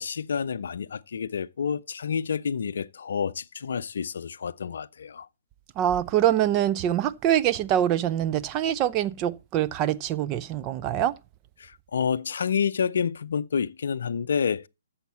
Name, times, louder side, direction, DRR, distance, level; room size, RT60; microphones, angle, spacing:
voice 1, 0.0-5.3 11.6-14.7, left 6 dB, 55° left, 0.5 m, -29 dB
voice 2, 5.8-11.1, right 11 dB, 25° right, 0.5 m, -24 dB
13.5 x 7.1 x 4.1 m
figure-of-eight pair, 130°, 0 cm